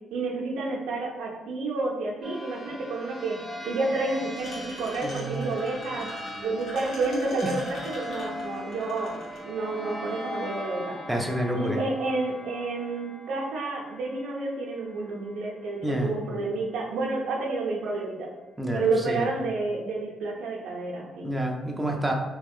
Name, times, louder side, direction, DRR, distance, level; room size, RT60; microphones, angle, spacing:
voice 1, 0.1-3.4 3.6-6.1 6.4-11.0 11.5-18.3 18.7-21.2, right 3 dB, 80° right, -2 dB, 0.7 m, -30 dB
sound 1, 2.2-15.4, equal, 30° left, 1.0 m, -40 dB
sound 2, 4.4-9.4, left 1 dB, 65° left, 1.3 m, -42 dB
voice 2, 5.0-5.5 7.4-7.5 11.1-11.8 15.8-16.1 18.6-19.3 21.2-22.1, right 1 dB, 10° right, 1 dB, 0.5 m, -28 dB
3.0 x 2.4 x 3.5 m, 1.1 s
cardioid pair, 90°, 0 cm